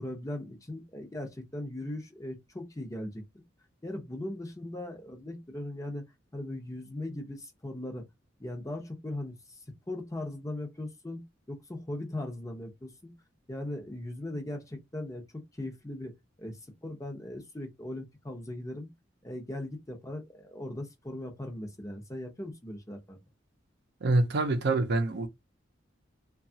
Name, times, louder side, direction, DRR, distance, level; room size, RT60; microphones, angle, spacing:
voice 1, 0.0-3.2 3.8-6.0 6.3-8.1 8.4-9.6 9.9-11.2 11.5-13.1 13.5-18.9 19.2-23.2, left 1 dB, 15° left, 0.8 m, -39 dB
voice 2, 24.0-25.3, right 2 dB, 60° right, 0.6 m, -26 dB
2.9 x 2.3 x 2.7 m
head